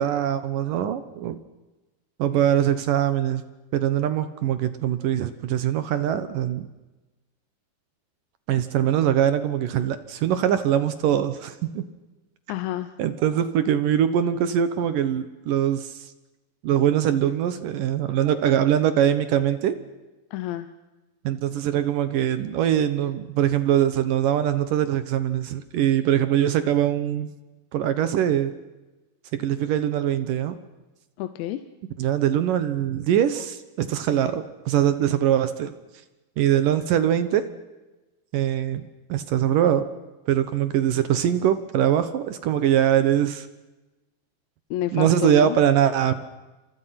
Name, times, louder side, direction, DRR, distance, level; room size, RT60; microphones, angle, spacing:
voice 1, 0.0-1.4 2.2-3.4 3.7-6.7 8.5-11.8 13.0-16.1 16.6-19.8 21.2-27.3 27.7-28.5 29.3-30.6 32.0-35.7 36.4-37.4 38.3-39.9 40.3-43.5 44.9-46.1, right 10 dB, 65° right, 11 dB, 2.2 m, -22 dB
voice 2, 12.5-12.9 20.3-20.7 31.2-31.6 44.7-45.6, left 13 dB, 80° left, 10 dB, 3.2 m, -29 dB
29.0 x 27.0 x 5.9 m, 1.1 s
omnidirectional pair, 5.2 m